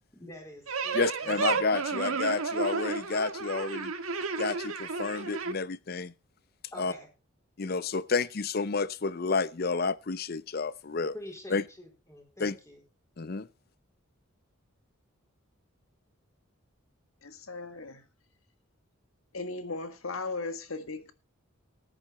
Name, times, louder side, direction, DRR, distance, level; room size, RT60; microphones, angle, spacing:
voice 1, 0.1-1.6 6.7-7.1 11.1-12.8, left 1 dB, 15° left, 4.4 m, -47 dB
sound 1, 0.7-5.5, right 4 dB, 80° right, 1.6 m, -32 dB
voice 2, 0.9-3.9 4.4-6.1 6.8-6.9 7.6-11.1 11.5-11.6 12.4-12.5 13.2-13.5, left 4 dB, 45° left, 0.6 m, -30 dB
voice 3, 17.2-18.1 19.3-21.1, left 3 dB, 75° left, 1.6 m, -37 dB
14.0 x 10.5 x 4.2 m
head